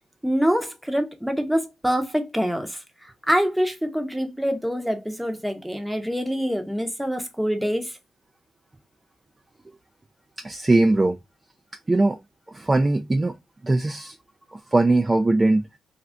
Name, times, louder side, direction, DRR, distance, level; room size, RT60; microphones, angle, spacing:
voice 1, 0.2-8.0, equal, 5° right, 0.7 m, -25 dB
voice 2, 10.4-11.2 11.9-12.2 12.5-13.3 13.6-14.2 14.7-15.6, right 2 dB, 20° right, 0.3 m, -20 dB
2.5 x 2.3 x 3.3 m
cardioid pair, 90°, 0 cm